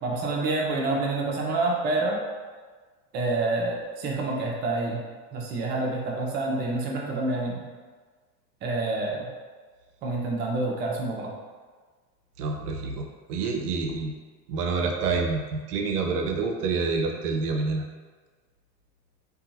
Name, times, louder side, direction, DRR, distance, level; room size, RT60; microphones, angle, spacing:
voice 1, 0.0-2.2 3.1-5.0 5.3-7.6 8.6-9.3 10.0-11.3, right 2 dB, 25° right, -2 dB, 0.4 m, -27 dB
voice 2, 12.4-14.1 14.5-17.8, right 4 dB, 70° right, 2 dB, 0.5 m, -27 dB
2.7 x 2.3 x 2.6 m, 1.4 s
hypercardioid pair, 85°, 49 cm